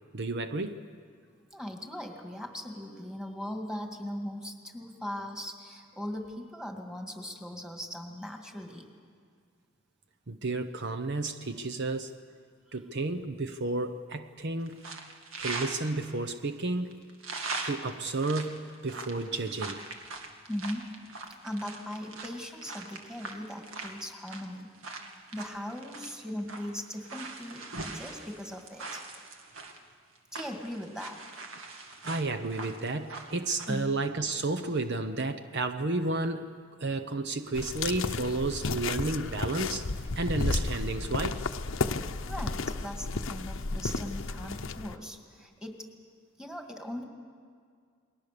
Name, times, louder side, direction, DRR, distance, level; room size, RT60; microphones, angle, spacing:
voice 1, 0.1-0.8 10.3-12.1 12.7-14.8 15.4-17.0 17.6-19.8 32.0-36.5 36.8-39.8 40.2-41.4, right 2 dB, 60° right, 9 dB, 0.9 m, -32 dB
voice 2, 1.5-8.9 20.5-20.9 21.4-24.7 25.1-27.7 27.9-29.0 30.3-31.2 33.7-33.9 42.3-45.9 46.4-47.0, left 1 dB, 5° right, 3 dB, 2.1 m, -39 dB
sound 1, 14.6-15.8 16.3-16.4 16.9-29.8 30.2-33.7, right 3 dB, 75° right, 2.0 m, -41 dB
footsteps on concrete, 37.5-45.0, left 3 dB, 70° left, 0.8 m, -33 dB
29.0 x 21.0 x 6.8 m, 2.1 s
head